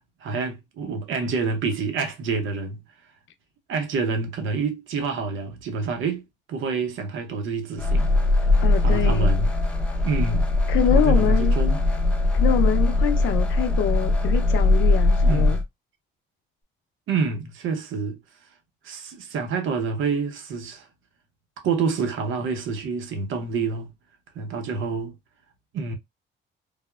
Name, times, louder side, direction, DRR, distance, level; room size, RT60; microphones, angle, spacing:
voice 1, 0.2-2.8 3.7-6.2 6.5-8.1 8.8-9.5 10.0-10.5 10.9-11.8 15.2-15.6 17.1-18.2 18.8-20.9 21.6-23.9 24.3-25.1 25.7-26.0, right 5 dB, 80° right, 0.8 m, -27 dB
sound 1, 7.8-15.6, left 2 dB, 5° left, 0.7 m, -20 dB
voice 2, 8.6-9.3 10.7-11.8 12.3-15.6, left 9 dB, 75° left, 0.5 m, -25 dB
3.3 x 2.0 x 2.2 m
cardioid pair, 90°, 20 cm